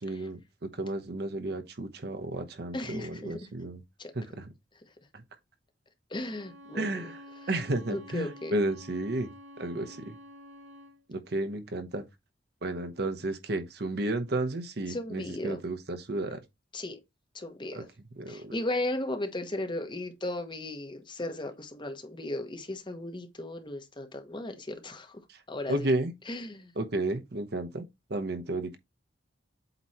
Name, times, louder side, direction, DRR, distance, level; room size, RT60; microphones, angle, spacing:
voice 1, 0.0-3.8 4.1-4.5 6.7-7.2 7.5-9.3 9.6-10.1 11.1-12.0 12.6-16.4 17.7-17.8 18.2-18.5 25.7-26.1 26.8-27.8 28.1-28.8, right 2 dB, 60° right, 0.9 m, -32 dB
voice 2, 2.7-3.5 4.0-4.1 6.1-7.1 7.9-8.5 14.9-15.6 16.7-17.0 17.3-17.9 18.3-25.2 25.5-25.9 26.3-26.7, left 1 dB, 25° left, 1.0 m, -36 dB
Bowed string instrument, 6.2-11.0, left 1 dB, 75° right, 2.9 m, -49 dB
8.0 x 3.1 x 4.2 m
head